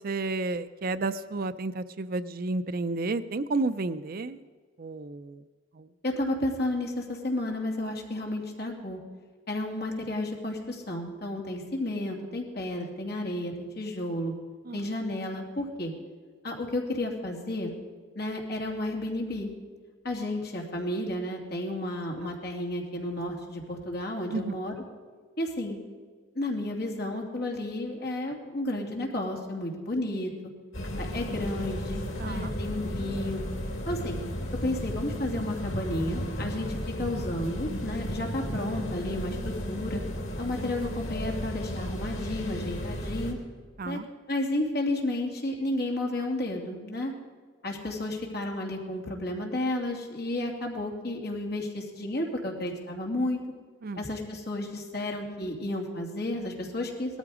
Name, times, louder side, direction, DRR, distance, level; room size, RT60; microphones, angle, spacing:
voice 1, 0.0-4.4 4.8-5.4 5.7-5.9 14.7-14.8 22.2-22.3 24.3-24.6 32.2-32.5 43.8-44.1 53.8-54.0, right 3 dB, 50° right, 13 dB, 0.5 m, -31 dB
voice 2, 6.0-9.0 9.5-14.3 14.7-15.9 16.4-17.7 18.1-19.5 20.0-24.7 25.4-25.8 26.3-30.3 31.0-33.4 33.9-34.2 34.6-40.0 40.4-43.4 43.8-44.0 44.3-47.1 47.6-53.4 54.0-57.2, left 1 dB, 55° left, 1 dB, 2.6 m, -32 dB
sound 1, 30.7-43.3, equal, 85° left, 2.9 m, -34 dB
18.0 x 13.5 x 4.9 m, 1.5 s
head